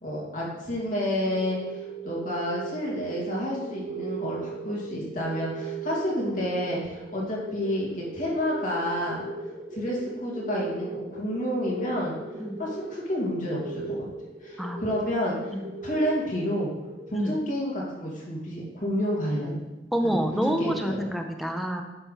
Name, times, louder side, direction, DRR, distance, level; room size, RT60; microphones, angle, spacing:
voice 1, 0.0-9.3 9.7-12.2 12.6-14.1 14.4-15.5 15.8-16.7 17.1-19.6 20.0-20.2 20.6-21.1, equal, 45° left, -4 dB, 2.1 m, -30 dB
sound 1, 1.1-17.4, right 3 dB, 45° right, 1.1 m, -38 dB
voice 2, 19.9-21.8, equal, ahead, 4 dB, 0.6 m, -28 dB
8.9 x 3.4 x 5.6 m, 1.1 s
head